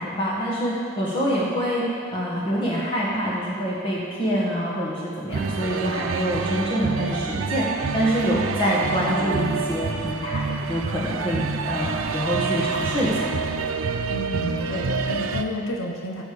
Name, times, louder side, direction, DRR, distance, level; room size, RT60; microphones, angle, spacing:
voice 1, 0.0-7.7 7.9-13.3, equal, 25° left, -7 dB, 1.4 m, -26 dB
sound 1, 5.3-15.4, right 4 dB, 80° right, 0.5 m, -27 dB
voice 2, 14.1-16.2, left 1 dB, 70° left, 1 dB, 1.0 m, -30 dB
14.5 x 5.0 x 6.9 m, 2.4 s
head